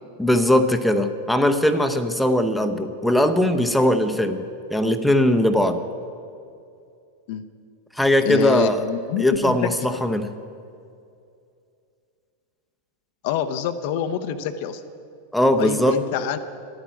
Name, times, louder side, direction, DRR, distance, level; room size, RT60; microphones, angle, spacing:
voice 1, 0.2-4.4 4.7-5.8 7.9-8.9 9.2-10.3 15.3-16.0, left 1 dB, ahead, 6 dB, 0.7 m, -20 dB
voice 2, 8.2-9.7 13.2-14.8 15.6-16.4, left 8 dB, 50° left, 10 dB, 0.6 m, -26 dB
11.5 x 8.8 x 9.6 m, 2.5 s
figure-of-eight pair, 90°, 0 cm